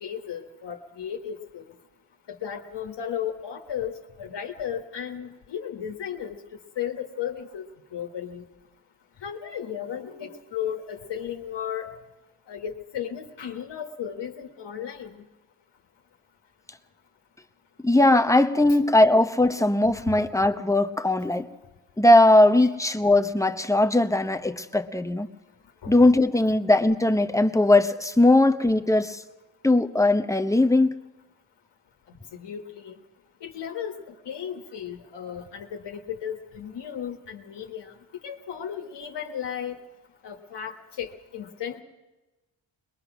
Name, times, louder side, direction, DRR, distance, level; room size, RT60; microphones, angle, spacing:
voice 1, 0.0-1.7 2.3-6.4 6.8-8.4 9.2-11.9 12.5-15.2 25.8-25.9 32.1-33.0 33.4-37.9 38.2-39.8 40.2-41.8, left 9 dB, 70° left, 1.6 m, -35 dB
voice 2, 17.8-21.5 22.0-25.3 25.9-29.2 29.6-30.9, left 2 dB, 5° left, 1.0 m, -19 dB
21.5 x 21.5 x 6.1 m
cardioid pair, 80°, 43 cm